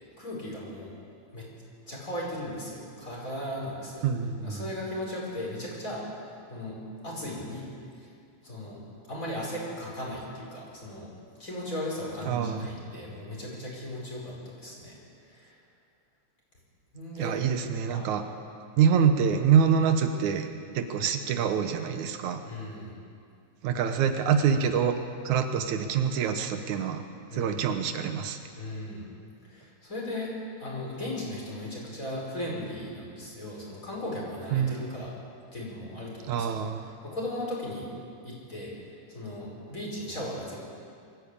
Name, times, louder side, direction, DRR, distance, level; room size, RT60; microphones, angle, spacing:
voice 1, 0.1-0.9 1.3-1.5 1.9-4.1 4.4-6.0 6.5-6.8 7.0-7.6 8.0-8.1 8.4-8.8 9.1-11.1 11.4-15.0 15.2-15.6 16.9-17.4 17.9-18.2 22.4-22.9 27.3-27.6 28.6-29.1 29.5-30.3 30.6-35.1 35.5-36.7 37.0-37.9 38.2-40.6, left 1 dB, 25° left, -3 dB, 5.6 m, -37 dB
voice 2, 4.0-4.7 12.3-12.7 17.2-18.2 18.8-20.5 20.8-22.4 23.6-25.0 25.2-27.0 27.3-28.4 34.5-35.0 36.3-36.9, right 7 dB, 80° right, 7 dB, 2.4 m, -25 dB
23.0 x 14.5 x 8.5 m, 2.3 s
omnidirectional pair, 3.3 m